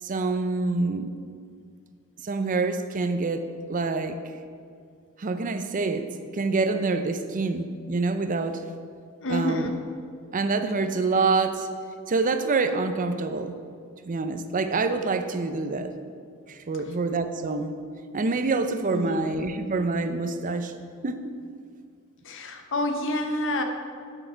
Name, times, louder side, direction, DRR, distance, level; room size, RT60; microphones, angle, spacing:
voice 1, 0.0-1.1 2.2-4.2 5.2-8.6 9.3-9.7 10.3-11.7 12.1-13.6 14.0-15.9 16.5-17.7 18.1-20.7 21.0-21.3, right 3 dB, 35° right, 9 dB, 0.5 m, -26 dB
voice 2, 9.2-9.7 18.9-19.2 22.2-23.6, left 1 dB, 60° left, 5 dB, 0.9 m, -28 dB
8.5 x 8.0 x 4.5 m, 2.3 s
head